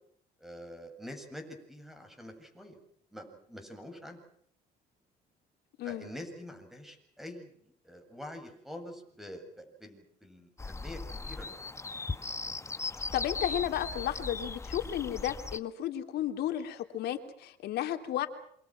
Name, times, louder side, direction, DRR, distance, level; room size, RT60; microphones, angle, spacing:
voice 1, 0.4-2.8 3.1-4.2 5.8-7.5 7.8-11.6, left 1 dB, ahead, 6 dB, 7.7 m, -46 dB
voice 2, 5.8-6.1 13.1-18.3, left 11 dB, 75° left, 7 dB, 3.3 m, -33 dB
sound 1, 10.6-15.6, left 3 dB, 15° left, 1.3 m, -38 dB
28.0 x 26.0 x 6.1 m, 0.66 s
cardioid pair, 110°, 17 cm